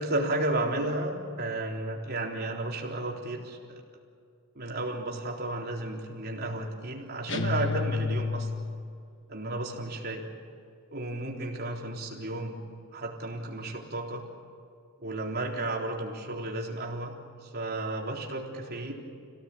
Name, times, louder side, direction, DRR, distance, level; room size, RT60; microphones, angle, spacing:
voice 1, 0.0-3.8 4.6-8.6 9.3-10.2 10.9-12.6 12.9-14.2 15.0-17.1 17.4-18.9, right 2 dB, 45° right, -1 dB, 3.8 m, -33 dB
sound 1, 7.3-9.0, left 4 dB, 55° left, 1.2 m, -30 dB
27.5 x 17.0 x 8.8 m, 2.3 s
head